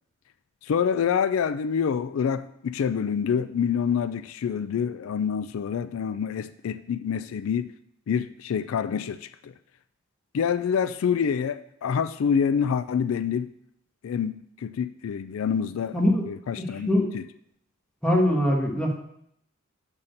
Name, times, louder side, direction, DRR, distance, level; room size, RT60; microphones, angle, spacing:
voice 1, 0.6-7.7 8.1-9.5 10.3-13.5 14.0-16.0 16.3-16.9 17.1-17.2, left 7 dB, 85° left, 14 dB, 0.4 m, -27 dB
voice 2, 15.9-16.2 16.9-17.1 18.0-18.9, left 1 dB, 5° left, -2 dB, 1.4 m, -22 dB
7.2 x 4.2 x 6.5 m, 0.73 s
head